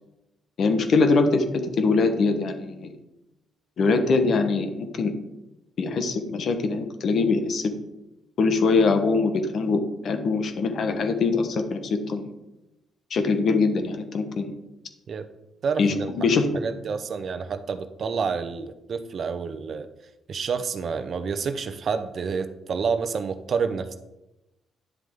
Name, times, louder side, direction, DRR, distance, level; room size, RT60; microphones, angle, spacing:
voice 1, 0.6-2.9 3.8-5.1 5.8-7.8 8.4-12.3 13.1-14.5 15.8-16.5, left 4 dB, 60° left, 7 dB, 1.2 m, -23 dB
voice 2, 15.6-16.1 16.5-19.9 20.3-24.0, right 5 dB, 50° right, 10 dB, 0.8 m, -28 dB
10.0 x 7.5 x 3.7 m, 0.94 s
cardioid pair, 90°, 0 cm